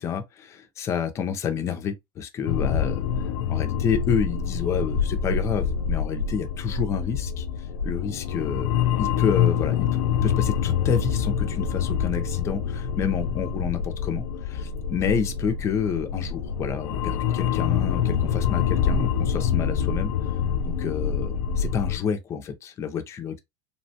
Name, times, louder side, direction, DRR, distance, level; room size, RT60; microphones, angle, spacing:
voice 1, 0.0-3.0 3.5-7.5 7.8-8.7 9.0-20.1 20.7-23.4, left 7 dB, 20° left, 0.4 m, -29 dB
sound 1, 2.5-22.0, left 7 dB, 85° left, 0.4 m, -26 dB
2.8 x 2.1 x 2.7 m
supercardioid pair, 175°, 14 cm